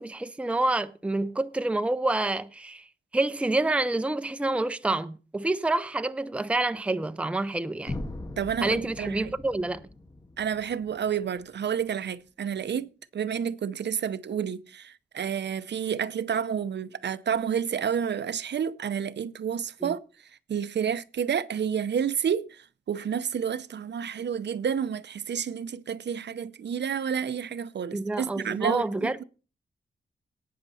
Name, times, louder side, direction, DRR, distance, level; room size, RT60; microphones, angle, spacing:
voice 1, 0.0-2.9 3.1-8.0 8.6-9.8 19.8-19.9 27.9-29.2, right 2 dB, 5° right, 0.5 m, -28 dB
sound 1, 7.9-11.8, left 2 dB, 20° left, 1.0 m, -40 dB
voice 2, 8.4-9.3 10.4-20.0 20.5-22.6 22.9-29.2, right 8 dB, 65° right, 0.7 m, -30 dB
18.0 x 6.6 x 4.1 m
wide cardioid pair, 170°, 19 cm